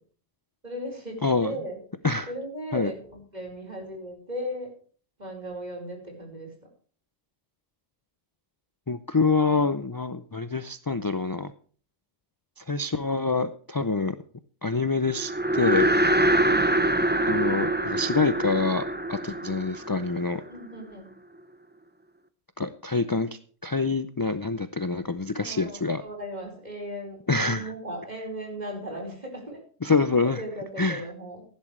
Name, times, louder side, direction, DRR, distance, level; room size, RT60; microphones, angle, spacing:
voice 1, 0.6-1.8 2.3-4.7 5.2-6.5 20.5-21.1 25.3-29.6 30.2-31.5, equal, 35° right, 1 dB, 4.9 m, -37 dB
voice 2, 1.2-1.5 2.0-2.3 2.7-2.9 8.9-11.5 12.6-14.2 14.6-15.9 17.3-20.4 22.6-26.0 27.3-27.7 29.8-30.4 30.8-31.1, left 3 dB, 35° left, 12 dB, 0.3 m, -26 dB
sound 1, 15.2-20.6, right 1 dB, 10° right, 0.6 m, -24 dB
16.0 x 11.0 x 3.3 m, 0.43 s
omnidirectional pair, 1.3 m